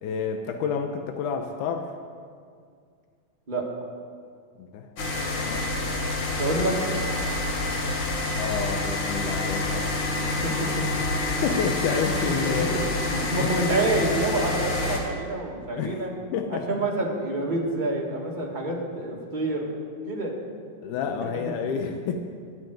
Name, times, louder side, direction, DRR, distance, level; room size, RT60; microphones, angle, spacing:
voice 1, 0.0-1.9 4.6-4.9 5.4-5.7 8.4-9.9 11.4-12.8 13.4-13.5 15.8-16.1 16.3-16.9 20.8-22.2, left 6 dB, 85° left, 5 dB, 2.3 m, -29 dB
sound 1, 5.0-15.0, left 2 dB, 50° left, 2.0 m, -27 dB
voice 2, 6.4-6.8 10.1-10.5 12.6-12.7 13.1-16.1 16.5-19.7 20.0-20.3 20.9-21.3 21.6-21.7, right 2 dB, 25° right, -2 dB, 1.2 m, -28 dB
13.0 x 7.5 x 9.3 m, 2.1 s
omnidirectional pair, 3.5 m